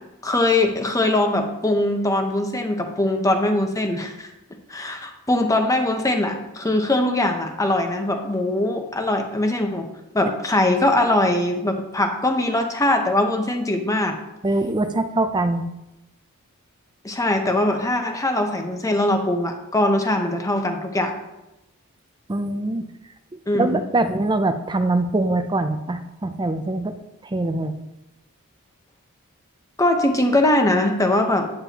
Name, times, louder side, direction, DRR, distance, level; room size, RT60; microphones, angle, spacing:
voice 1, 0.2-4.3 4.7-9.9 10.1-14.2 17.0-21.1 23.5-23.8 29.8-31.5, left 1 dB, 15° left, 4 dB, 0.9 m, -21 dB
voice 2, 14.4-15.6 22.3-22.9 23.5-27.0 27.2-27.7, right 2 dB, 20° right, 9 dB, 0.5 m, -23 dB
9.0 x 8.7 x 2.9 m, 0.95 s
head